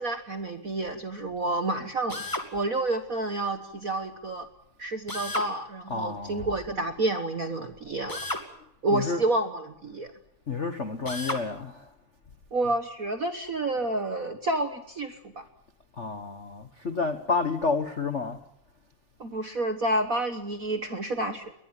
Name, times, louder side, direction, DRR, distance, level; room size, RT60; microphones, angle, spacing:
voice 1, 0.0-2.2 2.5-4.5 4.8-8.2 8.8-10.1 12.5-15.4 19.2-21.4, right 2 dB, 55° right, 0.9 m, -29 dB
Drill, 2.1-2.5 5.1-5.5 8.1-8.5 11.0-11.4, left 1 dB, 10° left, 1.9 m, -32 dB
voice 2, 5.9-6.6 8.9-9.3 10.5-11.9 15.9-18.4, left 4 dB, 60° left, 0.7 m, -30 dB
22.0 x 19.5 x 8.9 m
omnidirectional pair, 3.3 m